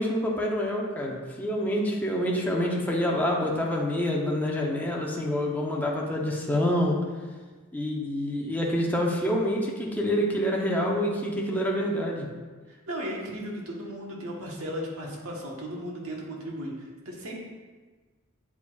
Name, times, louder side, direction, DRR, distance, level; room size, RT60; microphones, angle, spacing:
voice 1, 0.0-7.0 7.7-12.3, equal, 10° left, -2 dB, 0.8 m, -27 dB
voice 2, 12.7-17.4, equal, 80° right, -2 dB, 1.3 m, -36 dB
8.1 x 4.8 x 2.4 m, 1.3 s
head